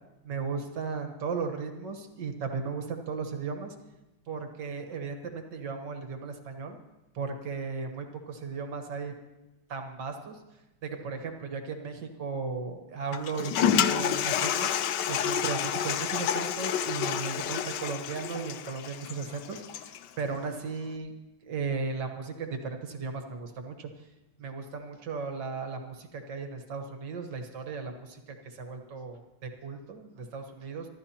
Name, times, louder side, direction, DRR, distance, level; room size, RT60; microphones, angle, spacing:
voice 1, 0.2-3.7 4.3-6.8 7.1-9.1 9.7-10.4 10.8-14.7 15.1-21.1 21.5-23.9 24.4-30.9, right 5 dB, 60° right, 6 dB, 1.8 m, -36 dB
Toilet flush, 13.1-20.0, left 9 dB, 70° left, 1.1 m, -29 dB
25.0 x 13.0 x 2.9 m, 0.98 s
omnidirectional pair, 2.3 m